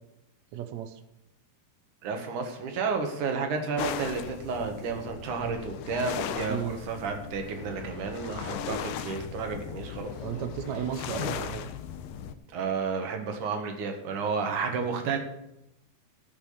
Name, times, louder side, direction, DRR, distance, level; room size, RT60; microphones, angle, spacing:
voice 1, 0.5-1.0 6.5-6.8 10.2-11.7, right 10 dB, 85° right, 9 dB, 1.5 m, -34 dB
voice 2, 2.0-10.5 11.1-11.3 12.5-15.2, right 5 dB, 60° right, 4 dB, 2.9 m, -32 dB
sound 1, 3.8-12.3, left 8 dB, 80° left, 1.9 m, -37 dB
15.5 x 6.0 x 7.2 m, 0.87 s
omnidirectional pair, 4.4 m